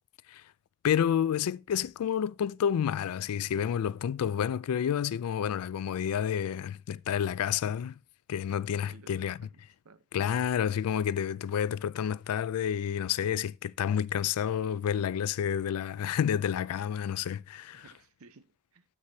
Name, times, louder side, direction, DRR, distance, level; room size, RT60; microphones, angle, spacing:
voice 1, 0.8-8.0 8.3-9.4 10.1-17.8, left 8 dB, 75° left, 0.3 m, -29 dB
voice 2, 8.8-10.0 17.7-18.8, right 4 dB, 70° right, 0.7 m, -57 dB
13.0 x 4.8 x 2.7 m
head